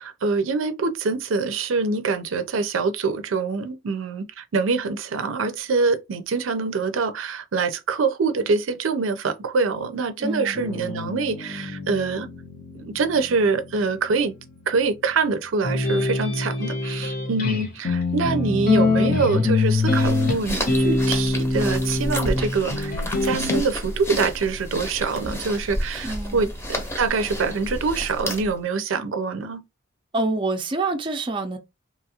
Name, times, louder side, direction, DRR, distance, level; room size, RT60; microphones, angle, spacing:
voice 1, 0.0-12.3 12.7-14.3 14.7-23.0 23.2-29.6, right 4 dB, 85° right, 0.5 m, -25 dB
voice 2, 10.2-10.6 26.0-26.5 30.1-31.6, right 2 dB, 25° right, 0.4 m, -26 dB
sound 1, 10.5-16.3, left 3 dB, 85° left, 0.7 m, -40 dB
sound 2, 15.6-23.6, left 3 dB, 50° left, 0.8 m, -23 dB
sound 3, 19.6-28.6, equal, 15° left, 0.7 m, -31 dB
3.0 x 2.4 x 2.7 m
head